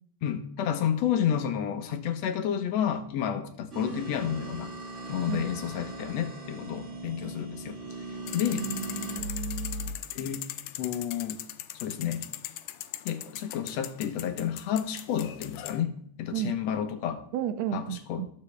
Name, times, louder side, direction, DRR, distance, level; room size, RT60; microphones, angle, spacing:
voice 1, 0.2-4.7 5.1-7.8 8.3-8.7 10.2-10.4 10.8-11.4 11.8-12.2 13.1-15.9 16.2-17.2 17.7-18.2, left 9 dB, 65° left, 7 dB, 2.0 m, -30 dB
sound 1, 3.7-9.9, right 2 dB, 30° right, 2.0 m, -38 dB
sound 2, 8.3-15.8, left 13 dB, 85° left, 2.1 m, -40 dB
voice 2, 8.5-9.9 16.3-16.6 17.3-18.3, right 10 dB, 70° right, 10 dB, 1.8 m, -33 dB
20.0 x 7.4 x 3.3 m, 0.67 s
omnidirectional pair, 3.4 m